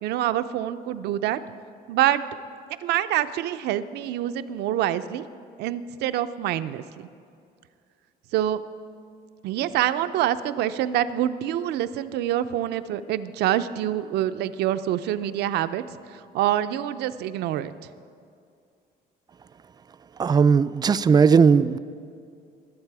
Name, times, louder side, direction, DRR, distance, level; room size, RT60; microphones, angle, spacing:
voice 1, 0.0-1.4 1.9-2.2 2.8-5.2 5.6-7.1 8.3-8.6 9.4-17.7, right 12 dB, 80° right, 12 dB, 0.5 m, -26 dB
voice 2, 20.2-21.8, right 6 dB, 25° right, 14 dB, 0.4 m, -17 dB
20.5 x 8.2 x 4.8 m, 2.4 s
cardioid pair, 110°, 17 cm